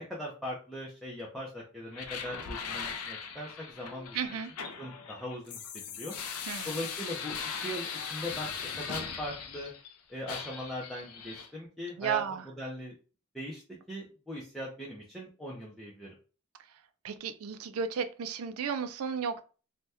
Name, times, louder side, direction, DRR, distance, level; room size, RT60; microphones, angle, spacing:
voice 1, 0.0-4.4 4.8-5.6 5.9-6.1 6.6-7.4 7.6-9.7 10.1-13.0 13.3-16.1, equal, ahead, 0.5 m, -40 dB
sound 1, 1.9-9.9 10.3-11.5, left 6 dB, 90° left, 0.5 m, -39 dB
voice 2, 4.1-4.5 6.5-6.8 12.0-12.4 17.0-19.4, right 7 dB, 75° right, 0.4 m, -33 dB
2.7 x 2.2 x 3.4 m
head